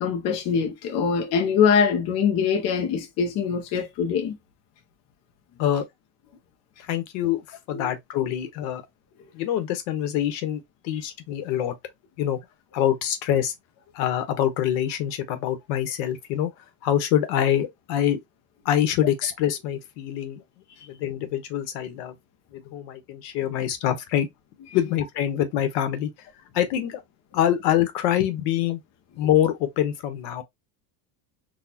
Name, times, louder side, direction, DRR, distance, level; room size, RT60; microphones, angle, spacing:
voice 1, 0.0-4.4 7.8-7.9, left 6 dB, 35° left, 0.5 m, -23 dB
voice 2, 6.8-8.8 9.3-11.7 12.2-12.4 12.7-13.5 13.9-18.2 18.6-20.4 20.8-22.1 22.5-24.3 24.7-26.3 26.5-27.0 27.3-28.8 29.2-30.4, left 11 dB, 65° left, 1.0 m, -25 dB
4.1 x 2.3 x 2.8 m
cardioid pair, 160°, 50 cm